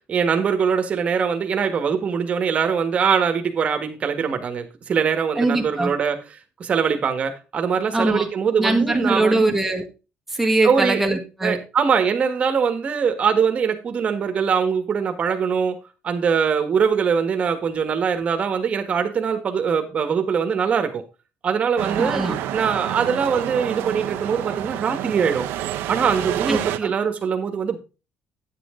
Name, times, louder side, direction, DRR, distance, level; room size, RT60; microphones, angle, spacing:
voice 1, 0.1-6.2 6.6-9.5 10.6-11.0 11.4-15.8 16.0-21.0 21.4-22.2 22.5-25.4 25.9-27.8, right 6 dB, 35° right, 7 dB, 1.6 m, -22 dB
voice 2, 5.4-5.9 7.9-8.3 8.6-9.8 10.3-11.6 22.0-22.4 26.5-26.9, right 2 dB, 5° right, 2 dB, 1.7 m, -21 dB
sound 1, 21.8-26.8, right 12 dB, 90° right, 0.9 m, -28 dB
9.7 x 7.9 x 3.8 m, 0.31 s
cardioid pair, 150°, 4 cm